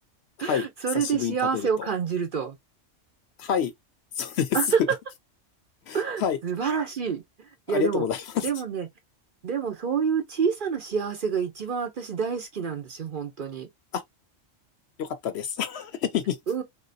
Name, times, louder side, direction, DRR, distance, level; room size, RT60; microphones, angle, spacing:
voice 1, 0.4-2.6 4.5-5.0 5.9-8.1 8.4-8.9 9.4-13.7 16.5-16.6, right 6 dB, 50° right, 0.7 m, -28 dB
voice 2, 0.9-1.9 3.4-3.7 4.2-4.6 5.9-6.4 7.7-8.5 13.9-14.0 15.0-16.4, left 8 dB, 65° left, 0.7 m, -28 dB
3.2 x 2.8 x 2.6 m
omnidirectional pair, 1.3 m